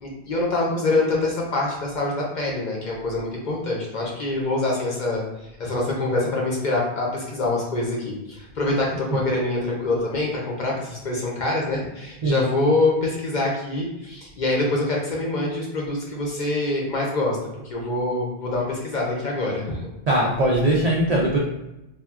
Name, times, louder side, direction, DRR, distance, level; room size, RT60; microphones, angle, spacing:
voice 1, 0.0-5.2 5.6-17.4 17.6-19.8, left 2 dB, 50° left, -3 dB, 0.7 m, -25 dB
voice 2, 20.1-21.4, right 1 dB, 60° right, -3 dB, 0.4 m, -20 dB
3.5 x 2.3 x 2.3 m, 0.92 s
omnidirectional pair, 1.1 m